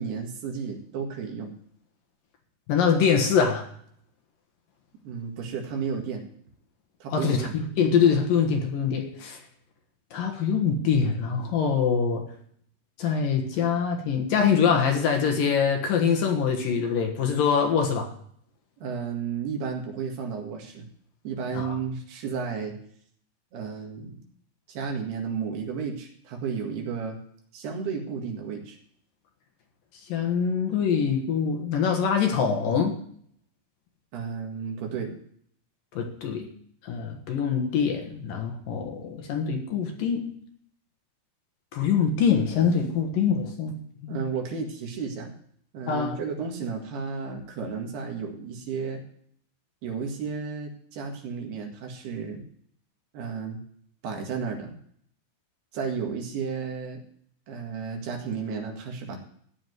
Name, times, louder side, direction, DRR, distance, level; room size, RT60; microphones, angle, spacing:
voice 1, 0.0-1.5 5.0-6.2 7.0-7.5 18.8-20.9 21.2-22.8 23.5-24.2 24.7-27.2 27.5-28.8 34.1-35.1 44.1-45.3 45.7-49.0 49.8-52.4 53.1-53.6 54.0-54.8 55.7-57.0 57.5-59.2, right 6 dB, 75° right, 2 dB, 3.9 m, -33 dB
voice 2, 2.7-3.6 7.1-9.4 10.1-12.3 13.0-18.1 21.5-21.7 30.1-33.0 35.9-36.5 36.8-40.3 41.7-43.7 44.0-44.2 45.9-46.2, left 6 dB, 65° left, 3 dB, 2.9 m, -24 dB
14.5 x 5.0 x 9.4 m, 0.62 s
omnidirectional pair, 4.6 m